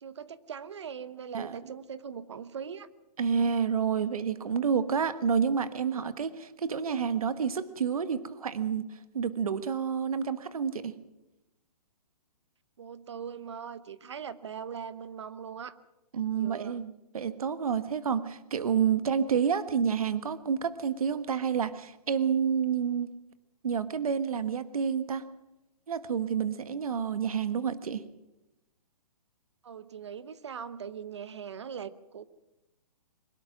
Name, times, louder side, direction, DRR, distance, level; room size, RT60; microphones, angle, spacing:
voice 1, 0.0-2.9 5.8-6.1 12.8-15.8 16.3-16.8 19.3-19.4 29.6-32.3, right 7 dB, 45° right, 15 dB, 0.9 m, -41 dB
voice 2, 3.2-8.8 9.1-10.9 16.1-23.1 23.6-25.2 25.9-28.0, right 7 dB, 60° right, 12 dB, 1.4 m, -29 dB
22.5 x 20.0 x 6.0 m, 0.96 s
hypercardioid pair, 180°, 20 cm